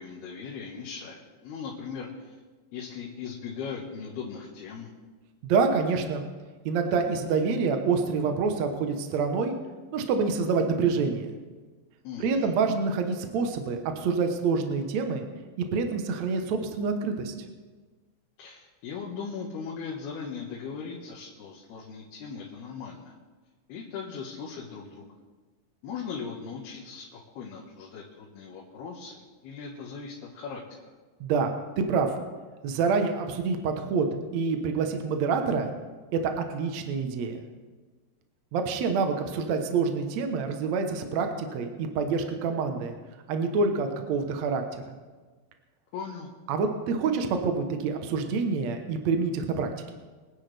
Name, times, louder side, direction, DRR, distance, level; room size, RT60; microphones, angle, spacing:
voice 1, 0.0-2.4 2.7-4.9 12.1-12.5 18.4-23.1 23.7-25.2 25.8-30.9 45.9-46.3, left 6 dB, 90° left, -3 dB, 3.4 m, -39 dB
voice 2, 5.4-6.2 6.7-9.6 9.9-11.3 12.2-15.2 15.6-17.3 31.2-32.1 32.6-34.1 34.3-35.7 36.1-37.4 38.5-42.9 43.3-44.8 46.5-49.7, right 5 dB, 65° right, 5 dB, 1.8 m, -27 dB
24.0 x 10.0 x 3.4 m, 1.3 s
omnidirectional pair, 4.4 m